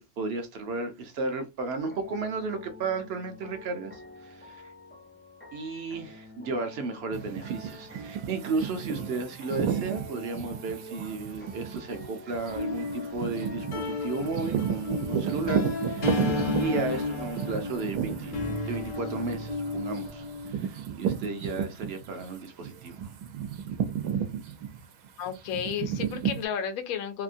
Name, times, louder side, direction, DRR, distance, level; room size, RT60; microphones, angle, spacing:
voice 1, 0.0-4.7 5.5-16.3 16.6-18.4 18.6-23.0, right 3 dB, 60° right, 0.7 m, -34 dB
sound 1, 1.8-14.0, left 3 dB, 15° left, 0.3 m, -49 dB
sound 2, 7.1-22.3 22.6-26.4, right 8 dB, 85° right, 1.1 m, -33 dB
sound 3, 12.5-20.5, left 3 dB, 50° left, 0.7 m, -33 dB
voice 2, 25.2-27.2, left 8 dB, 85° left, 1.1 m, -32 dB
2.8 x 2.6 x 2.5 m
omnidirectional pair, 1.5 m